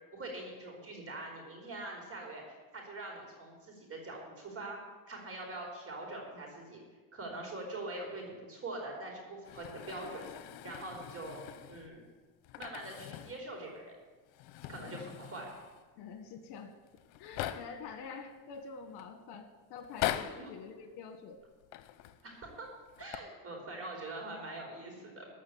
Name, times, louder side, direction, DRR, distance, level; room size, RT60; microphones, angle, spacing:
voice 1, 0.1-4.8 5.1-6.8 7.1-10.3 10.6-11.4 11.7-12.1 12.6-14.0 14.7-15.6 20.3-20.5 22.2-22.7 23.0-25.3, right 2 dB, 30° right, 1 dB, 4.9 m, -43 dB
sound 1, 9.5-12.0 12.4-13.5 13.8-13.9 14.3-15.8 16.6-16.7 16.9-17.9 18.5-19.0 19.8-20.5 21.6-22.2 22.9-23.2, left 13 dB, 80° left, 0.9 m, -41 dB
voice 2, 16.0-16.7 17.2-21.4, left 5 dB, 65° left, 6 dB, 1.7 m, -47 dB
14.5 x 6.1 x 8.7 m, 1.3 s
supercardioid pair, 105°, 43 cm